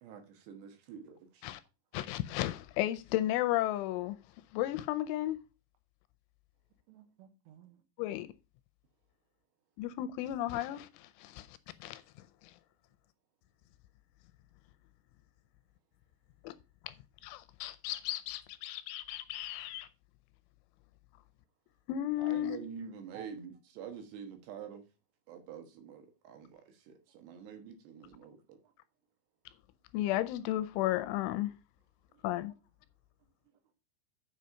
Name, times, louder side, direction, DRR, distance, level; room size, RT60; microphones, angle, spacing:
voice 1, 0.0-1.4 22.2-24.8 25.3-28.6, right 7 dB, 70° right, 3.1 m, -47 dB
voice 2, 1.9-4.2 4.5-5.4 8.0-8.3 9.8-12.6 16.4-16.6 16.8-16.9 17.2-19.9 21.9-22.6 29.9-31.5 32.2-32.5, left 14 dB, 85° left, 2.9 m, -34 dB
voice 3, 6.9-7.8 23.1-23.3 28.6-28.7 32.1-32.3 33.2-33.6, right 10 dB, 85° right, 3.8 m, -56 dB
7.5 x 6.3 x 5.6 m
omnidirectional pair, 5.7 m